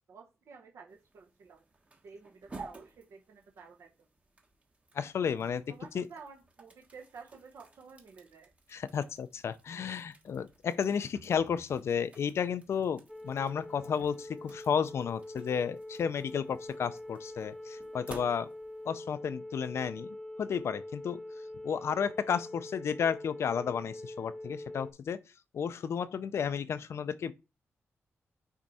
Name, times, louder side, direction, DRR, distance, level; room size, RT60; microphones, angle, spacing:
voice 1, 0.1-1.6 2.0-4.1 5.7-8.5, right 5 dB, 70° right, 1.0 m, -52 dB
sound 1, 0.9-18.9, right 3 dB, 25° right, 1.0 m, -54 dB
voice 2, 4.9-5.6 5.9-6.1 8.7-18.5 18.9-20.1 20.4-21.2 21.6-25.2 25.5-27.3, left 7 dB, 65° left, 0.5 m, -32 dB
sound 2, 13.1-24.9, left 1 dB, 5° left, 0.5 m, -44 dB
6.1 x 4.4 x 4.1 m
wide cardioid pair, 125°, 5 cm